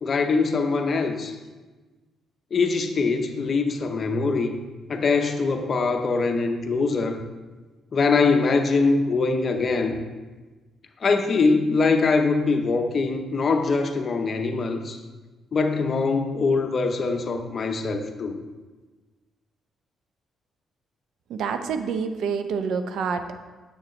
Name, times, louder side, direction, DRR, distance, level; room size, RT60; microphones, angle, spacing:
voice 1, 0.0-1.4 2.5-4.6 4.9-7.2 7.9-10.0 11.0-15.0 15.5-18.4, left 4 dB, 45° left, 6 dB, 0.7 m, -23 dB
voice 2, 21.3-23.4, right 5 dB, 75° right, 8 dB, 0.5 m, -27 dB
7.2 x 6.7 x 3.1 m, 1.3 s
cardioid pair, 90°, 0 cm